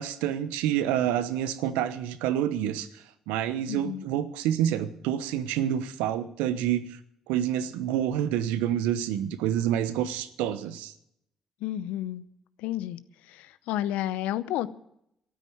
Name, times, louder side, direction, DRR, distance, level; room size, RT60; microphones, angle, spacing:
voice 1, 0.0-7.0 7.3-10.9, right 10 dB, 80° right, 1.0 m, -28 dB
voice 2, 3.7-4.0 11.6-12.2 12.6-13.0 13.3-14.7, left 13 dB, 75° left, 0.7 m, -31 dB
13.0 x 9.5 x 8.7 m
hypercardioid pair, 50°, 2 cm